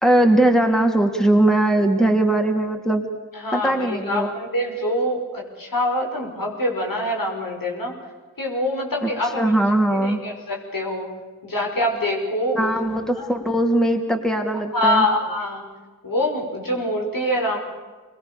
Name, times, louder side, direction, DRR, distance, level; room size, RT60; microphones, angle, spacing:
voice 1, 0.0-3.1 3.5-4.3 9.0-9.1 9.3-10.2 12.5-15.1, right 1 dB, ahead, 3 dB, 2.9 m, -20 dB
voice 2, 3.4-7.9 8.4-9.5 9.9-11.1 11.4-12.7 13.2-13.3 14.7-15.6 16.0-17.6, left 1 dB, 85° left, 0 dB, 5.9 m, -24 dB
25.5 x 22.0 x 7.0 m, 1.4 s
wide cardioid pair, 55°, 33 cm